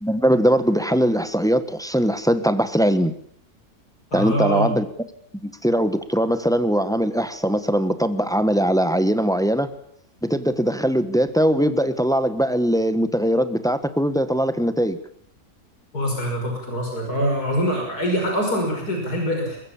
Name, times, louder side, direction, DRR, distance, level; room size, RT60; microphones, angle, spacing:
voice 1, 0.0-3.1 4.1-4.9 5.3-9.7 10.2-15.0, equal, ahead, 10 dB, 1.4 m, -21 dB
voice 2, 4.1-4.7 15.9-19.6, equal, 80° left, 1 dB, 6.4 m, -24 dB
23.0 x 21.5 x 7.4 m, 0.66 s
omnidirectional pair, 1.6 m